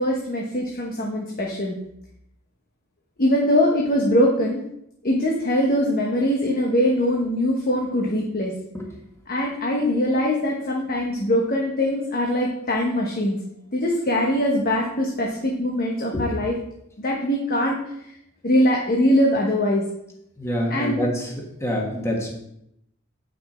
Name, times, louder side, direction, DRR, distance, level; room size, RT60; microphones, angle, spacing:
voice 1, 0.0-1.7 3.2-4.6 5.0-8.5 9.3-13.4 13.7-16.5 17.0-17.8 18.4-19.8 20.7-21.0, left 1 dB, 45° left, -1 dB, 1.1 m, -22 dB
voice 2, 20.4-21.3 21.6-22.3, equal, 15° left, -1 dB, 1.6 m, -26 dB
8.5 x 5.7 x 4.3 m, 0.77 s
head